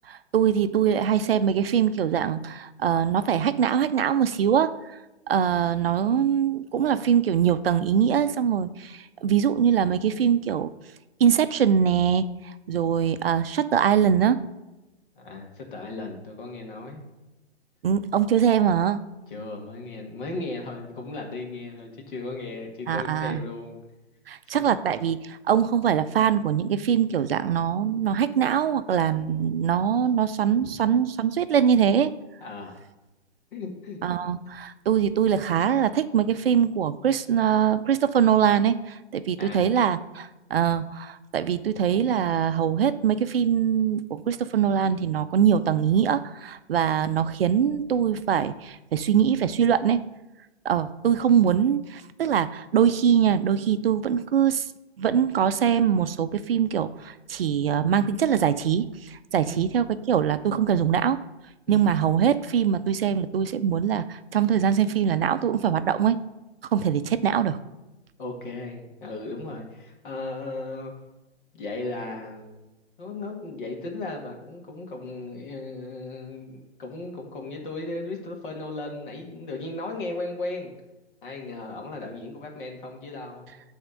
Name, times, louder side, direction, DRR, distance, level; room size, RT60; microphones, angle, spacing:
voice 1, 0.1-4.7 5.3-10.7 11.2-14.4 17.8-19.0 22.9-23.4 24.3-32.1 34.0-50.0 50.6-54.6 55.0-61.2 61.7-66.2 66.7-67.6, right 8 dB, 60° right, 12 dB, 0.5 m, -23 dB
voice 2, 15.2-17.0 19.3-23.8 24.5-24.6 32.4-32.8 33.5-34.0 39.4-39.6 59.4-59.8 61.7-61.9 68.2-70.9 71.5-72.4 73.0-80.7 81.2-83.6, left 2 dB, 50° left, 2 dB, 2.0 m, -36 dB
8.8 x 3.6 x 6.5 m, 1.0 s
figure-of-eight pair, 135°, 34 cm